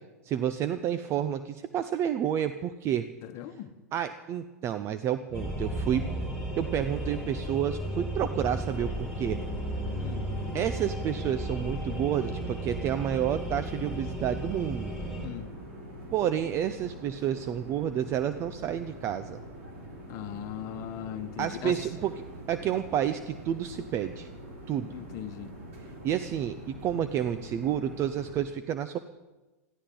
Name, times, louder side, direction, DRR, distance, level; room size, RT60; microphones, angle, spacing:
voice 1, 0.2-3.1 3.9-6.1 6.6-9.4 10.5-14.9 16.1-19.4 21.4-24.3 24.7-25.0 26.0-29.0, right 10 dB, 35° right, 11 dB, 0.6 m, -30 dB
voice 2, 3.2-3.7 9.9-10.3 15.2-15.5 20.1-21.8 24.9-25.5, left 11 dB, 40° left, 10 dB, 1.2 m, -39 dB
sound 1, 5.3-15.3, right 1 dB, 5° right, 5.5 m, -34 dB
sound 2, 8.6-28.5, right 1 dB, 60° right, 5.7 m, -44 dB
22.5 x 15.0 x 3.9 m, 1.1 s
hypercardioid pair, 100°, 8 cm